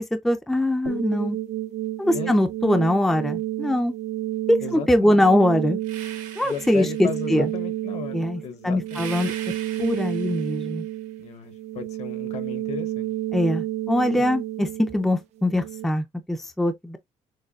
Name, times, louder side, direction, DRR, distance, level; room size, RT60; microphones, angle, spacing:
voice 1, 0.0-1.4 2.0-3.9 4.5-5.8 6.4-7.5 8.1-9.3 9.8-10.8 13.3-17.0, left 1 dB, ahead, 0.4 m, -22 dB
sound 1, 0.9-15.9, right 14 dB, 60° right, 0.5 m, -31 dB
voice 2, 4.6-5.2 6.4-9.2 11.2-13.1 14.2-14.3, left 6 dB, 55° left, 1.0 m, -35 dB
sound 2, 5.8-7.5 8.9-10.9, right 8 dB, 85° right, 1.5 m, -41 dB
6.4 x 2.2 x 2.3 m
cardioid pair, 145°, 13 cm